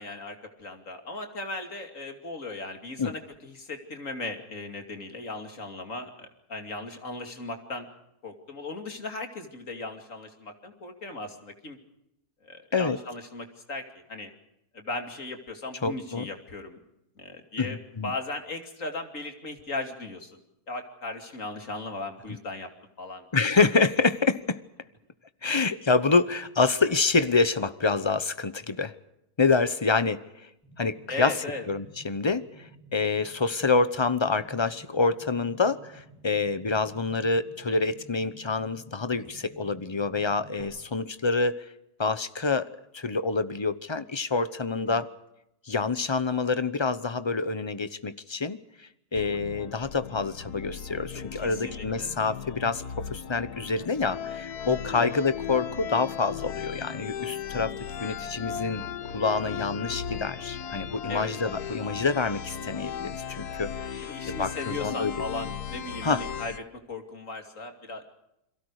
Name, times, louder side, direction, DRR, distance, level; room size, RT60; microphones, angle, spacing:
voice 1, 0.0-7.9 8.2-11.8 12.4-14.3 14.7-16.8 17.2-20.4 20.7-22.7 23.0-23.3 31.1-31.6 44.7-45.0 51.1-52.1 54.9-55.1 61.1-61.4 64.0-66.6 66.9-68.0, left 2 dB, 55° left, 5 dB, 3.1 m, -37 dB
voice 2, 15.8-16.3 17.6-18.1 23.3-24.6 25.4-28.9 29.4-30.2 30.8-31.4 31.7-41.6 42.0-45.1 45.7-48.6 49.1-58.8 59.1-65.1 66.0-66.2, left 4 dB, 25° left, 13 dB, 0.7 m, -27 dB
sound 1, 30.6-40.6, right 1 dB, 5° left, 7.2 m, -53 dB
sound 2, 49.1-66.6, left 8 dB, 80° left, 1.5 m, -37 dB
29.5 x 23.0 x 4.9 m, 0.84 s
omnidirectional pair, 1.7 m